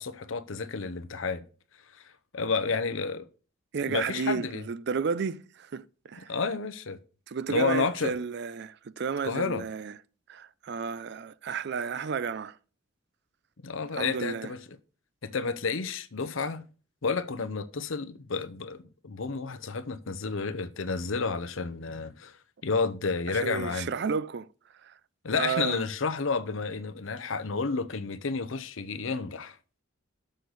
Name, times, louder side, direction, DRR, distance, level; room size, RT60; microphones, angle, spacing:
voice 1, 0.0-1.4 1.9-3.3 3.9-4.6 6.3-7.0 7.5-8.1 9.2-9.6 13.6-14.6 15.2-16.6 17.0-22.4 22.6-23.9 25.2-29.6, left 4 dB, 75° left, 0.7 m, -31 dB
voice 2, 3.7-6.3 7.3-9.9 10.3-12.6 14.0-14.5 23.3-24.5 24.8-24.9 25.3-25.8, right 5 dB, 55° right, 0.4 m, -32 dB
6.5 x 6.4 x 4.0 m
head